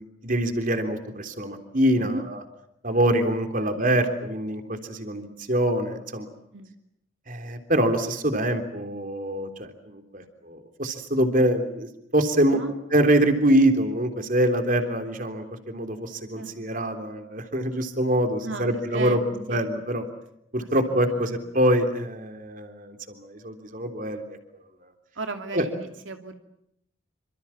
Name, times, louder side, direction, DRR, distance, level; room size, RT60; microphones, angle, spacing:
voice 1, 0.0-2.4 2.8-6.3 7.3-12.6 12.9-19.2 19.5-20.0 20.5-24.2 24.8-24.9 25.5-25.7, right 1 dB, 45° right, 6 dB, 3.4 m, -25 dB
voice 2, 3.6-4.2 6.5-6.7 12.5-12.7 16.3-16.5 18.4-19.6 20.6-21.4 25.1-26.3, right 3 dB, 80° right, 5 dB, 2.7 m, -36 dB
28.5 x 26.5 x 7.3 m, 0.77 s
head